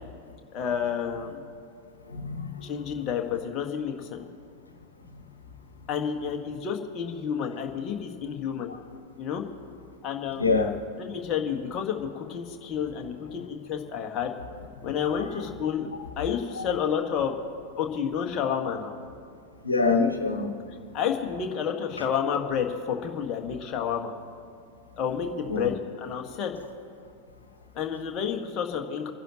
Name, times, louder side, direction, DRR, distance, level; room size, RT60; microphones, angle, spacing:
voice 1, 0.5-1.4 2.6-4.2 5.9-8.7 9.2-9.4 10.0-10.6 11.0-14.3 14.8-15.9 16.2-17.3 17.8-18.9 20.9-24.1 25.0-26.5 27.7-29.1, left 7 dB, 35° left, 3 dB, 1.7 m, -30 dB
voice 2, 2.1-2.6 8.7-8.8 10.4-10.7 15.1-15.4 16.6-16.7 19.6-20.5 25.5-25.7, left 4 dB, 80° left, 4 dB, 1.4 m, -26 dB
30.0 x 11.0 x 3.0 m, 2.2 s
figure-of-eight pair, 90°, 0 cm